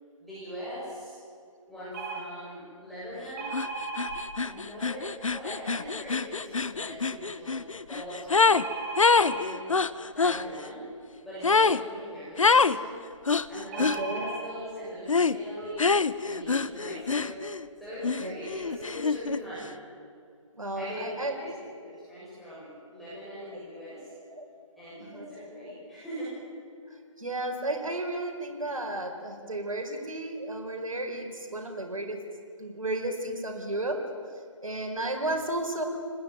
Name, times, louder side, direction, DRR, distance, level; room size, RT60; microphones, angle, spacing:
voice 1, 0.2-1.2 1.7-3.6 4.4-8.7 9.1-9.8 10.1-10.9 11.2-13.0 13.5-15.9 16.2-17.4 17.8-19.7 20.7-24.1 24.8-26.3, equal, ahead, -12 dB, 7.3 m, -41 dB
sound 1, 1.9-2.2 3.4-4.3 8.5-9.4 13.7-14.4 15.2-15.3 15.6-15.8, right 3 dB, 25° right, 3.4 m, -35 dB
sound 2, 3.5-3.7 4.0-8.7 9.0-10.4 11.4-11.8 12.4-12.8 13.3-14.0 15.1-15.4 15.8-17.6 18.0-19.4, left 4 dB, 70° left, 1.1 m, -25 dB
voice 2, 13.7-14.2 18.2-18.4 20.6-21.5 24.3-24.4 25.0-25.3 27.2-32.2 32.6-34.0 34.6-35.8, right 1 dB, 80° right, 3 dB, 5.0 m, -33 dB
29.5 x 20.5 x 9.4 m, 2.4 s
figure-of-eight pair, 150°, 17 cm